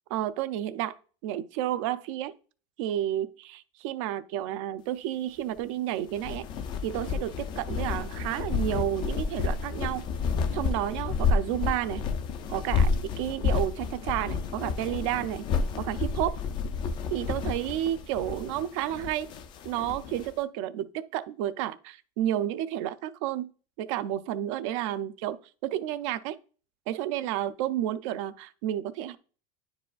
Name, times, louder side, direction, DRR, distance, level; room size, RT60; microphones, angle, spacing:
voice 1, 0.1-0.9 1.2-2.3 2.8-6.5 6.8-10.0 10.5-12.0 12.5-15.5 15.8-16.4 17.1-19.3 19.6-23.5 23.8-25.4 25.6-26.4 26.9-29.2, right 12 dB, 60° right, 0.5 m, -31 dB
sound 1, 6.1-20.3, left 5 dB, 25° left, 0.4 m, -30 dB
9.9 x 4.7 x 2.4 m
supercardioid pair, 170°, 19 cm